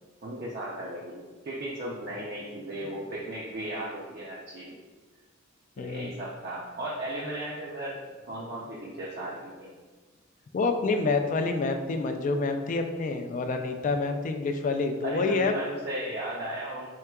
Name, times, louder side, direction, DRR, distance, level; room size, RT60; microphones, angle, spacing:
voice 1, 0.2-4.7 5.8-8.0 8.3-9.7 15.0-16.9, right 1 dB, 50° right, -5 dB, 0.5 m, -36 dB
voice 2, 5.8-6.1 10.5-15.5, left 3 dB, 40° left, 6 dB, 0.3 m, -27 dB
4.6 x 3.7 x 2.3 m, 1.4 s
head